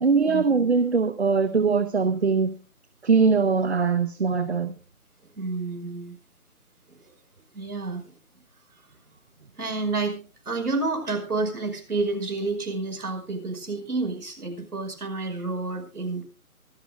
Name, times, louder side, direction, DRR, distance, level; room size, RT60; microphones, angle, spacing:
voice 1, 0.0-2.5 3.0-4.7, right 5 dB, 45° right, 0.8 m, -21 dB
voice 2, 5.4-6.2 6.9-7.0 7.5-8.0 9.6-10.2 10.5-16.2, right 3 dB, 85° right, 5.4 m, -29 dB
24.5 x 11.5 x 2.3 m
figure-of-eight pair, 175°, 44 cm